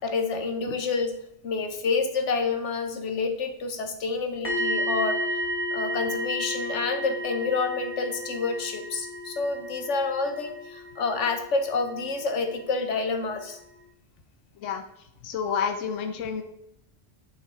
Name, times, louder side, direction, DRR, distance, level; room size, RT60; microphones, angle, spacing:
voice 1, 0.0-1.1 1.4-5.4 5.7-13.6, left 4 dB, 70° left, 7 dB, 1.4 m, -28 dB
sound 1, 4.4-12.3 12.6-12.8, equal, 25° left, 2.1 m, -33 dB
voice 2, 15.2-16.4, left 7 dB, 85° left, 6 dB, 1.1 m, -29 dB
9.4 x 5.7 x 4.7 m, 0.77 s
omnidirectional pair, 1.3 m